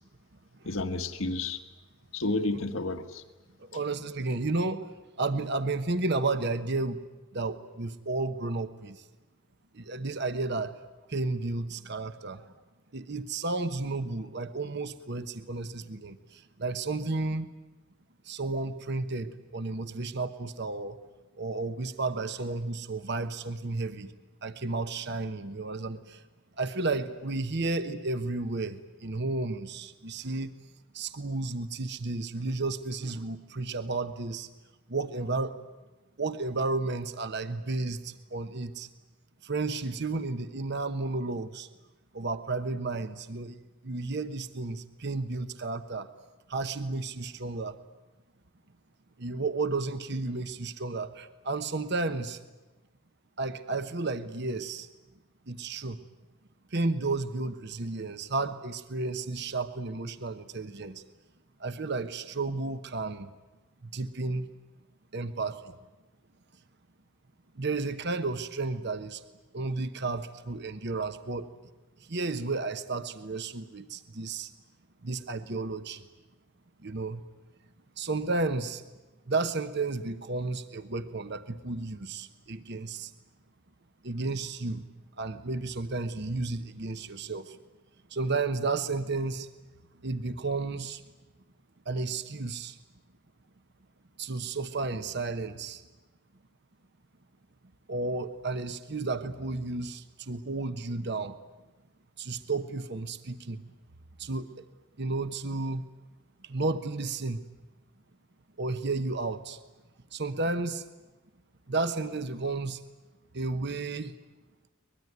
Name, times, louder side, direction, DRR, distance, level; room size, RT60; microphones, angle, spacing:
voice 1, 0.7-1.6 2.1-3.2, left 2 dB, 90° left, 6 dB, 1.7 m, -31 dB
voice 2, 3.6-4.8 5.2-7.0 7.3-9.1 9.7-10.8 11.1-12.4 12.9-17.5 18.2-21.0 21.4-24.1 24.4-26.2 26.6-30.5 30.9-34.5 34.9-35.6 36.2-38.9 39.4-41.7 42.1-46.1 46.5-47.8 49.2-52.4 53.4-54.9 55.5-56.0 56.7-61.0 61.6-63.3 63.8-64.5 65.1-65.7 67.5-69.2 69.5-71.5 72.1-74.5 75.0-76.0 76.8-77.2 78.0-78.8 79.3-83.1 84.0-84.8 85.2-87.6 88.1-89.5 90.0-91.0 91.9-92.8 94.2-95.8 97.9-101.4 102.2-103.6 104.2-104.6 105.0-105.8 106.4-107.4 108.6-109.6 110.1-110.8 111.7-112.8 113.3-114.1, right 3 dB, 55° right, 10 dB, 1.1 m, -32 dB
23.5 x 21.0 x 9.5 m, 1.1 s
head